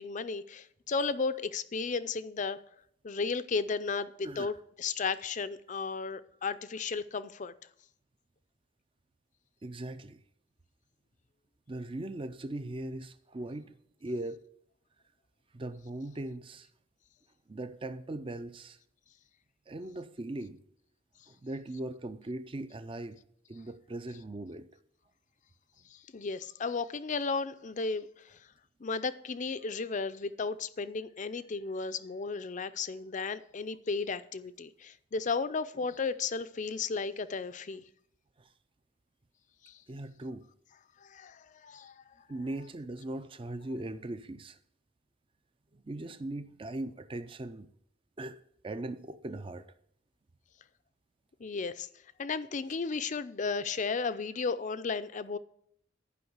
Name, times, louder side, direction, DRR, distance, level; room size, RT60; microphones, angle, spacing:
voice 1, 0.0-2.6 3.0-7.5 25.9-28.4 28.8-37.8 39.6-39.8 41.0-42.0 51.4-51.9 52.2-55.4, left 4 dB, 40° left, 0.5 m, -34 dB
voice 2, 9.6-10.2 11.7-14.4 15.5-16.7 17.5-18.8 19.7-20.6 21.3-23.2 23.5-24.7 38.4-38.5 39.9-40.4 42.3-44.6 45.9-47.7 48.2-49.7, right 2 dB, 25° right, 0.4 m, -39 dB
11.0 x 5.3 x 8.0 m
head